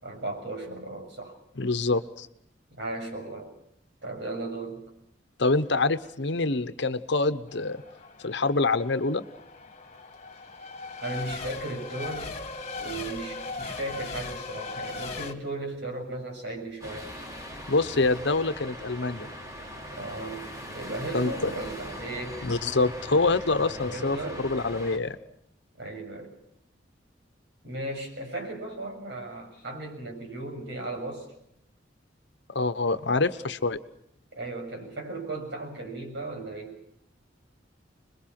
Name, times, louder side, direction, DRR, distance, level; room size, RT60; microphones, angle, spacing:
voice 1, 0.0-1.4 2.7-3.5 4.0-4.9 11.0-12.3 12.8-17.1 20.0-20.5 20.7-22.5 23.9-24.5 25.8-26.3 27.6-31.3 34.3-36.8, right 2 dB, 70° right, 3 dB, 7.1 m, -36 dB
voice 2, 1.6-2.3 5.4-7.8 8.2-9.2 17.7-19.3 21.1-21.5 22.4-25.2 32.5-33.8, left 3 dB, 70° left, 11 dB, 1.1 m, -26 dB
Race car auto racing / Accelerating revving vroom / Mechanisms, 7.5-15.3, left 3 dB, 35° left, 2.1 m, -39 dB
sound 1, 16.8-25.0, equal, 20° right, 3.4 m, -40 dB
26.0 x 22.0 x 6.0 m, 0.74 s
head